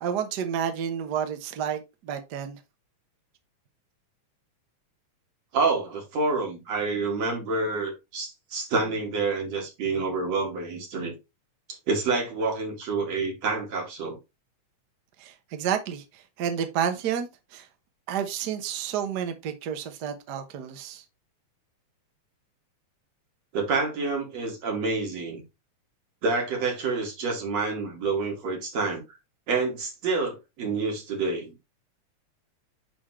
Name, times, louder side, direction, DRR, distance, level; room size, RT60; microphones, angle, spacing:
voice 1, 0.0-2.6 15.2-16.0 16.4-17.7 18.1-21.0, right 8 dB, 90° right, 0.9 m, -30 dB
voice 2, 5.5-11.1 11.9-14.2 23.5-25.4 26.2-29.0 29.5-31.6, right 3 dB, 60° right, 3.6 m, -28 dB
10.5 x 3.8 x 3.2 m
omnidirectional pair, 3.4 m